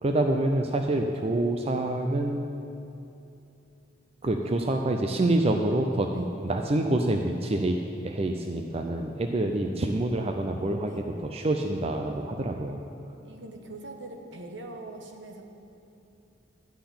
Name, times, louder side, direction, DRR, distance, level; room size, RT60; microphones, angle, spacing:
voice 1, 0.0-2.5 4.2-7.8 8.0-12.8, right 1 dB, 30° right, 3 dB, 0.5 m, -27 dB
voice 2, 9.4-10.0 10.8-11.1 13.2-15.4, right 1 dB, 70° right, 3 dB, 1.2 m, -43 dB
12.0 x 5.8 x 8.5 m, 2.8 s
head